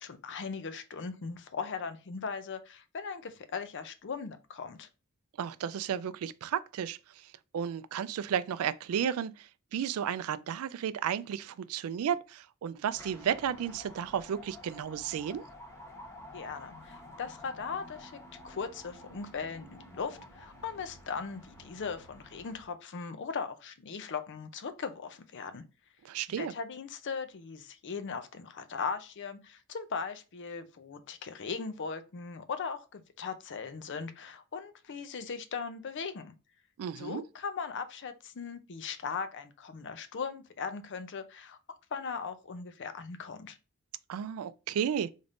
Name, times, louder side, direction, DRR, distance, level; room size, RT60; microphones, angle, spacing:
voice 1, 0.0-4.9 16.3-18.1 18.4-25.6 26.4-36.3 37.0-41.6 41.9-43.6, left 5 dB, 55° left, 0.5 m, -39 dB
voice 2, 5.4-7.0 7.5-15.4 26.0-26.5 36.8-37.2 44.1-45.1, right 8 dB, 70° right, 0.3 m, -33 dB
sound 1, 12.9-22.7, left 1 dB, 10° left, 1.0 m, -51 dB
4.0 x 3.4 x 2.5 m
head